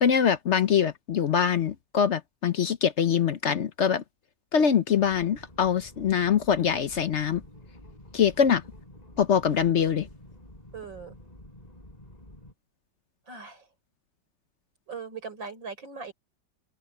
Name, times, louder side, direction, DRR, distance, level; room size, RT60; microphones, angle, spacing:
voice 1, 0.0-4.0 4.5-7.4 8.1-8.6 9.2-10.1, left 7 dB, 55° left, 0.8 m, -23 dB
sound 1, 4.9-12.5, left 1 dB, 20° left, 4.8 m, -49 dB
voice 2, 10.7-11.2 13.3-13.6 14.9-16.1, right 5 dB, 85° right, 5.6 m, -39 dB
open air
omnidirectional pair, 2.0 m